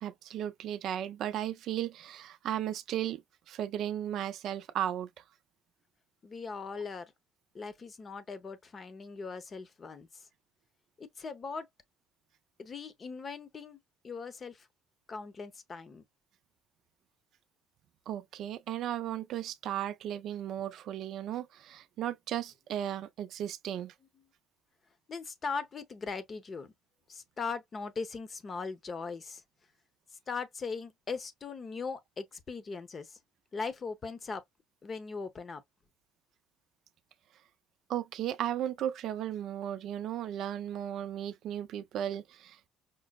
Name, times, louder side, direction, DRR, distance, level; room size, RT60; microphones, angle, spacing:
voice 1, 0.0-3.2 3.5-5.2 18.1-23.9 37.9-42.7, right 11 dB, 65° right, 0.4 m, -35 dB
voice 2, 6.2-7.1 7.5-10.3 11.0-11.7 12.6-13.8 14.0-14.7 15.1-16.0 25.1-26.7 27.1-29.4 30.3-33.2 33.5-34.4 34.8-35.6, left 4 dB, 35° left, 0.8 m, -39 dB
5.2 x 2.0 x 2.3 m
cardioid pair, 95°, 0 cm